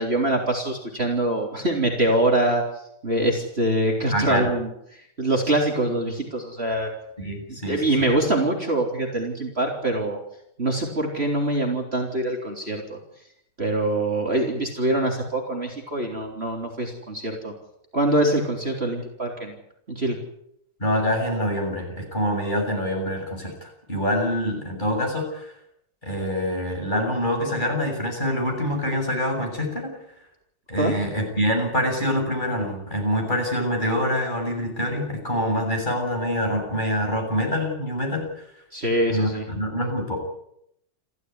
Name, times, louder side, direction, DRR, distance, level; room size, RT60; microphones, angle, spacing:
voice 1, 0.0-2.6 3.0-4.7 5.2-6.9 7.7-10.2 10.6-13.0 13.6-17.5 17.9-19.6 19.9-20.2 30.8-30.9 38.7-39.4, right 1 dB, 30° right, 1 dB, 3.9 m, -24 dB
voice 2, 4.1-4.5 7.2-7.8 20.8-25.5 26.0-30.0 30.7-38.3 39.1-40.2, equal, 25° left, 2 dB, 7.7 m, -25 dB
29.0 x 14.5 x 9.7 m, 0.76 s
omnidirectional pair, 2.1 m